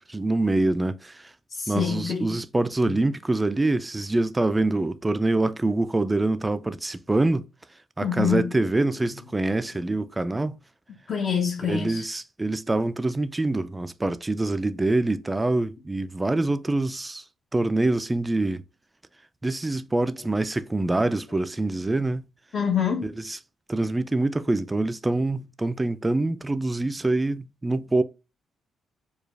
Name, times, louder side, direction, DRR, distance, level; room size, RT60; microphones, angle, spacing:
voice 1, 0.1-1.3 1.7-7.5 8.0-10.6 11.6-17.2 17.5-18.6 19.4-22.3 23.0-23.4 23.7-28.0, right 2 dB, 15° right, 0.3 m, -25 dB
voice 2, 1.5-2.4 2.8-2.9 8.0-8.5 11.1-12.0 22.5-23.1, left 7 dB, 55° left, 0.7 m, -26 dB
4.6 x 2.3 x 3.3 m
cardioid pair, 95°, 0 cm